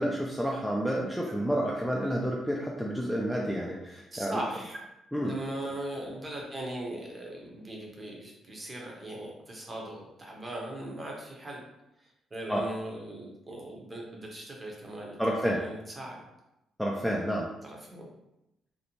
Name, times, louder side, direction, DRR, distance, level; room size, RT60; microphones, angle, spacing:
voice 1, 0.0-4.4 5.1-5.3 12.5-12.6 15.2-15.6 16.8-17.5, equal, ahead, -3 dB, 0.3 m, -29 dB
voice 2, 4.1-4.8 5.2-11.6 12.0-16.2 17.6-18.1, right 1 dB, 25° right, -1 dB, 0.7 m, -39 dB
2.6 x 2.0 x 2.9 m, 0.90 s
cardioid pair, 90°, 0 cm